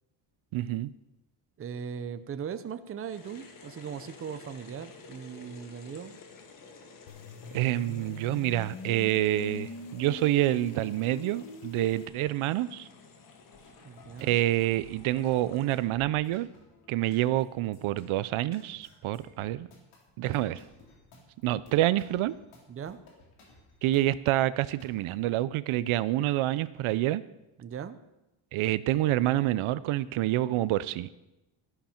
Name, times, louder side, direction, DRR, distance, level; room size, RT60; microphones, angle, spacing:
voice 1, 0.5-0.9 7.5-12.9 14.2-16.5 16.9-19.7 20.2-20.6 21.4-22.4 23.8-27.2 28.5-31.1, right 15 dB, 80° right, 17 dB, 0.6 m, -27 dB
voice 2, 1.6-6.2 13.8-14.4 22.7-23.0 27.6-28.0, right 7 dB, 30° right, 11 dB, 0.6 m, -39 dB
sound 1, 3.0-15.7, left 4 dB, 40° left, 1.3 m, -52 dB
sound 2, 7.1-12.1, left 5 dB, 65° left, 1.5 m, -43 dB
sound 3, 13.5-24.9, left 3 dB, 85° left, 3.9 m, -57 dB
13.5 x 11.0 x 4.4 m, 0.94 s
cardioid pair, 160°, 49 cm